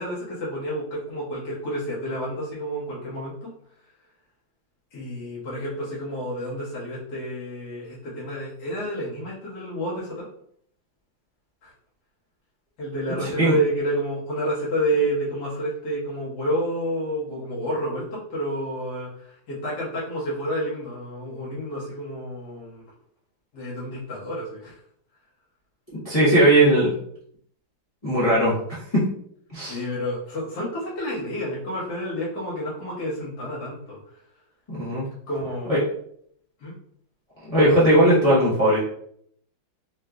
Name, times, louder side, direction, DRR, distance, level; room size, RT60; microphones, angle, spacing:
voice 1, 0.0-3.5 4.9-10.2 11.6-11.7 12.8-22.8 23.5-24.8 29.6-34.2 35.3-35.7 36.6-36.7, equal, 60° left, -7 dB, 1.6 m, -29 dB
voice 2, 13.2-13.6 26.0-26.9 28.0-29.0 29.5-29.8 34.7-35.0 35.7-35.8 37.4-38.8, right 1 dB, 35° left, -10 dB, 0.5 m, -19 dB
3.8 x 2.5 x 2.3 m, 0.66 s
omnidirectional pair, 2.1 m